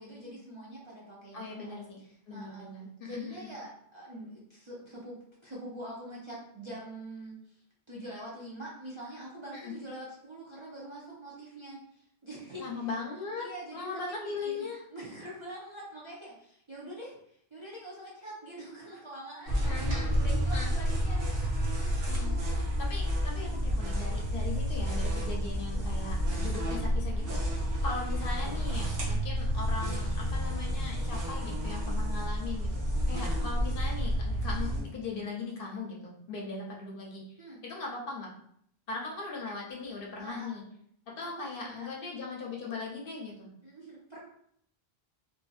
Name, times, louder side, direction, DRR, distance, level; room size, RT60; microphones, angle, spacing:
voice 1, 0.0-2.7 3.0-7.6 7.9-12.9 13.4-14.5 14.9-19.8 20.1-22.6 23.4-23.6 25.7-26.1 37.4-37.6 40.2-40.5 41.2-41.9 43.6-44.2, right 1 dB, 35° right, -7 dB, 0.5 m, -45 dB
voice 2, 1.3-2.0 2.3-3.5 9.5-9.7 12.6-14.8 19.6-20.1 20.5-20.7 22.0-22.3 22.8-32.8 33.1-37.2 37.6-38.3 38.9-40.6 41.1-43.5, left 4 dB, 65° left, -2 dB, 0.8 m, -39 dB
sound 1, 19.5-34.8, equal, 75° right, 1.0 m, -30 dB
2.6 x 2.5 x 2.3 m, 0.68 s
omnidirectional pair, 1.1 m